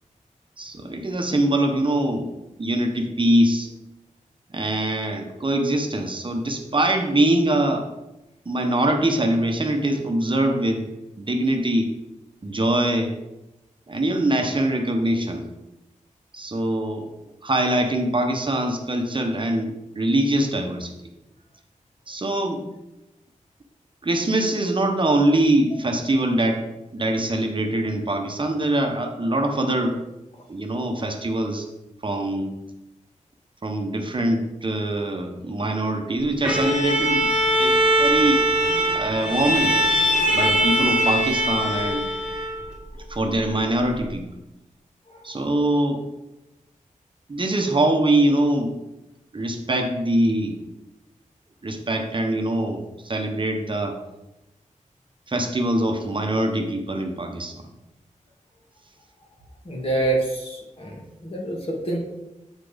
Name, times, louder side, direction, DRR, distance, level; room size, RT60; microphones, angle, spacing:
voice 1, 0.6-2.3 2.6-3.7 4.5-7.9 8.5-10.9 11.2-11.9 12.4-13.1 13.9-15.4 16.3-17.1 17.4-20.9 22.1-22.6 24.0-26.6 26.9-30.0 30.5-31.7 32.0-32.6 33.6-37.3 37.6-38.4 38.9-39.7 40.3-42.1 43.1-44.2 45.2-46.0 47.3-48.7 49.3-50.6 51.6-54.0 55.3-57.6, right 1 dB, 40° right, 3 dB, 0.9 m, -23 dB
Bowed string instrument, 36.4-42.7, equal, 5° right, 2.1 m, -21 dB
voice 2, 45.1-45.5 59.6-62.0, right 2 dB, 45° left, -2 dB, 2.1 m, -27 dB
8.1 x 4.2 x 5.0 m, 0.96 s
wide cardioid pair, 100°, 13 cm